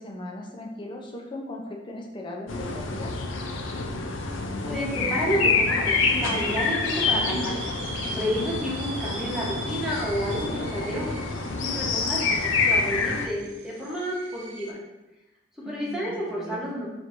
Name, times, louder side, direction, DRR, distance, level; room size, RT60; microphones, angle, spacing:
voice 1, 0.0-3.3 8.6-9.0 15.6-16.7, left 1 dB, 25° left, 0 dB, 0.6 m, -38 dB
sound 1, 2.5-13.3, left 4 dB, 85° left, 0.4 m, -27 dB
voice 2, 4.6-7.6 8.1-11.0 11.5-14.8 15.6-16.9, equal, 5° right, -6 dB, 1.1 m, -30 dB
sound 2, 5.9-14.7, right 3 dB, 75° right, 0.6 m, -39 dB
5.9 x 2.9 x 2.6 m, 1.0 s
head